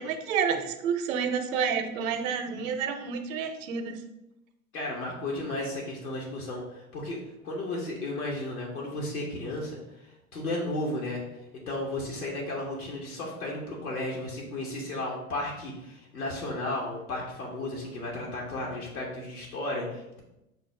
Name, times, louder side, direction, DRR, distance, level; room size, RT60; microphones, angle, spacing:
voice 1, 0.0-4.0, right 6 dB, 65° right, 7 dB, 0.6 m, -29 dB
voice 2, 4.7-7.2 7.4-11.2 11.7-20.2, left 1 dB, 85° left, -3 dB, 0.9 m, -34 dB
5.9 x 2.0 x 3.2 m, 0.91 s
hypercardioid pair, 90°, 44 cm